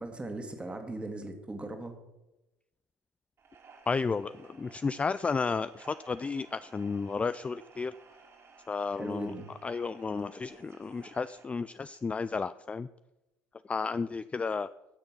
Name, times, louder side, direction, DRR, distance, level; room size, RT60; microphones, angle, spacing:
voice 1, 0.0-2.0 9.0-9.5, right 2 dB, 15° right, 6 dB, 1.9 m, -38 dB
sound 1, 3.4-12.3, right 5 dB, 35° right, 2.4 m, -57 dB
voice 2, 3.9-7.9 8.7-9.3 9.6-12.9 13.7-14.7, left 4 dB, 15° left, 15 dB, 0.3 m, -32 dB
15.0 x 6.6 x 6.1 m, 0.98 s
figure-of-eight pair, 65°, 8 cm